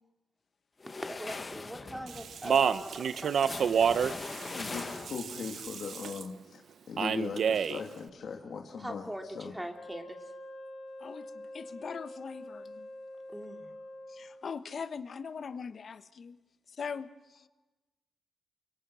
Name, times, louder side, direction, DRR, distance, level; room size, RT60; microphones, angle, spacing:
sound 1, 0.8-5.4, left 3 dB, 25° left, 1.0 m, -42 dB
voice 1, 1.0-4.6 8.8-10.2 13.3-13.7, equal, 5° right, 4 dB, 2.5 m, -42 dB
Speech, 2.1-6.2 7.0-7.8, right 7 dB, 65° right, 0.9 m, -29 dB
voice 2, 4.3-6.6 6.9-9.6, left 5 dB, 65° left, 2 dB, 2.6 m, -39 dB
Wind instrument woodwind instrument, 9.7-14.5, left 1 dB, 90° left, 5.0 m, -46 dB
voice 3, 11.0-12.9 14.1-16.4 16.7-17.5, left 6 dB, 50° left, 12 dB, 1.2 m, -41 dB
29.0 x 25.0 x 6.4 m, 1.1 s
wide cardioid pair, 140°, 0 cm